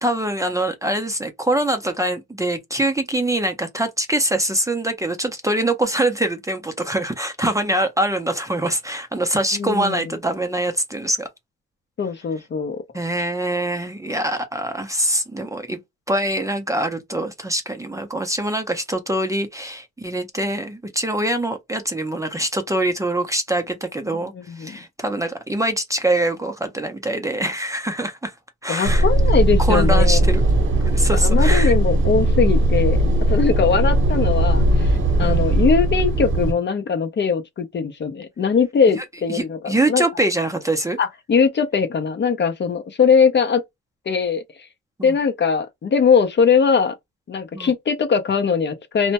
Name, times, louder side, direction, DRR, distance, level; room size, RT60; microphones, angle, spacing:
voice 1, 0.0-11.3 12.9-15.8 16.1-28.3 28.6-29.0 29.6-30.4 30.8-31.8 35.2-35.4 38.9-41.0 45.0-45.2 47.5-47.7, right 1 dB, 10° right, 0.5 m, -24 dB
voice 2, 9.5-10.0 12.0-12.8 24.3-24.8 28.7-30.3 31.2-40.0 41.0-43.6 44.1-44.4 45.0-46.9 47.3-49.1, left 6 dB, 35° left, 0.5 m, -20 dB
sound 1, 28.8-36.5, right 1 dB, 40° right, 0.9 m, -18 dB
2.1 x 2.1 x 2.7 m
cardioid pair, 90°, 30 cm